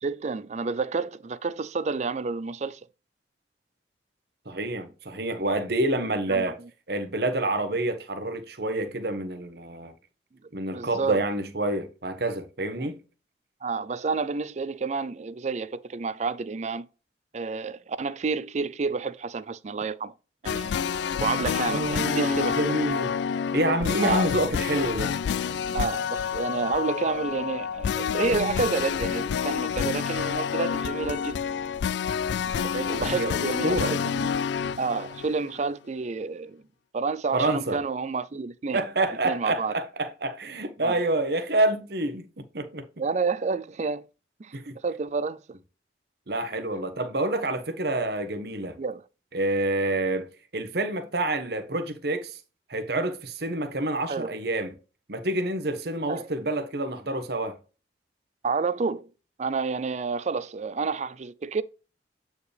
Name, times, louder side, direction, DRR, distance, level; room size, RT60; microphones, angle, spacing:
voice 1, 0.0-2.8 6.3-6.4 10.7-11.2 12.8-12.9 13.6-16.9 17.3-20.1 20.4-20.9 21.2-22.6 24.0-24.3 25.7-31.4 32.6-34.3 34.8-36.6 36.9-38.8 39.2-39.7 40.8-41.0 43.0-44.0 44.4-44.5 44.8-45.4 48.8-49.0 54.1-54.3 56.1-56.3 58.4-59.1 59.4-61.6, right 4 dB, 40° right, 0.4 m, -29 dB
voice 2, 4.5-6.6 6.9-9.9 10.5-13.0 21.6-23.1 23.5-25.1 33.0-34.0 37.3-37.8 38.7-42.9 44.5-44.8 46.3-48.8 49.3-50.3 50.5-52.4 52.7-54.7 55.1-57.6, right 2 dB, 60° right, 1.0 m, -28 dB
sound 1, 20.5-35.7, left 7 dB, 75° left, 0.3 m, -28 dB
8.4 x 4.7 x 3.3 m
head